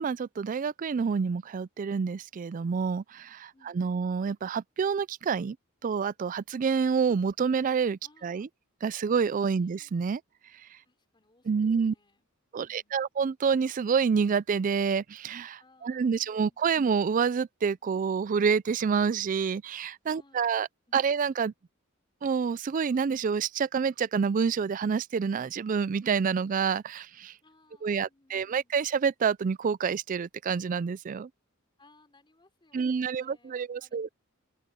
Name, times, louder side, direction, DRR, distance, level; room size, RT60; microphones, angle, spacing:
voice 1, 0.0-5.6 5.8-8.5 8.8-10.2 11.5-11.9 12.5-20.7 20.9-21.5 22.2-27.3 27.8-31.3 32.7-34.1, right 6 dB, 40° right, 0.3 m, -28 dB
voice 2, 3.5-4.2 8.0-8.5 9.5-9.9 10.8-13.0 15.6-16.8 20.1-21.1 27.4-28.8 31.8-34.1, left 2 dB, 25° left, 3.4 m, -64 dB
open air
head